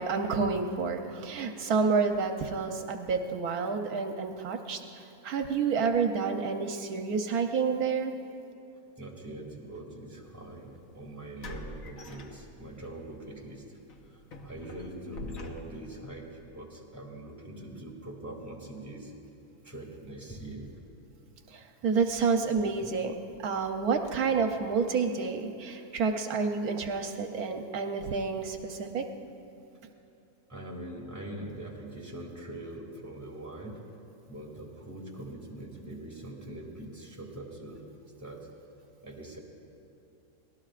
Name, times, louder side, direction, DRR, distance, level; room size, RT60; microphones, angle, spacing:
voice 1, 0.0-8.1 21.5-23.1 23.4-29.0, right 5 dB, 80° right, 5 dB, 1.3 m, -29 dB
voice 2, 9.0-13.6 14.4-16.3 16.5-19.1 19.6-20.7 30.5-33.8 34.3-37.8 38.2-38.4 39.0-39.4, right 1 dB, 10° right, -3 dB, 2.3 m, -42 dB
sound 1, 10.3-10.4 11.4-12.9 13.3-13.5 13.9-16.0, left 1 dB, 65° left, 1.5 m, -44 dB
25.0 x 18.5 x 2.5 m, 2.9 s
omnidirectional pair, 1.6 m